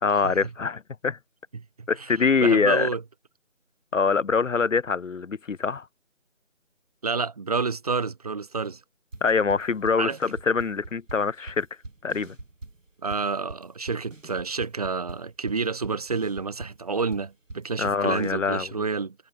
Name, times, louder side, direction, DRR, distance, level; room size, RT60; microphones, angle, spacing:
voice 1, 0.0-1.2 1.9-2.9 3.9-5.9 9.2-11.7 12.0-12.4 17.8-18.7, left 5 dB, 75° left, 1.0 m, -24 dB
voice 2, 1.8-3.0 7.0-8.8 10.0-10.2 13.0-19.2, right 4 dB, 30° right, 3.7 m, -29 dB
sound 1, 9.1-18.3, right 2 dB, 75° right, 6.5 m, -43 dB
figure-of-eight pair, 175°, 38 cm